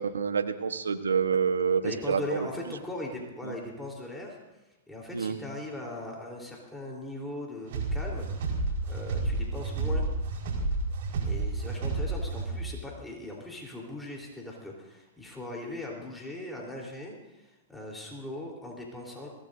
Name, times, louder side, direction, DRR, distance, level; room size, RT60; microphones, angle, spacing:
voice 1, 0.0-2.5 3.4-3.5 5.1-5.4, right 6 dB, 85° right, 9 dB, 1.2 m, -28 dB
voice 2, 1.8-4.4 4.9-8.3 8.9-10.1 11.2-19.3, left 1 dB, 5° left, -2 dB, 3.7 m, -39 dB
sound 1, 7.7-12.8, right 3 dB, 60° right, 4.7 m, -30 dB
22.5 x 17.5 x 2.7 m, 1.1 s
hypercardioid pair, 115°, 0 cm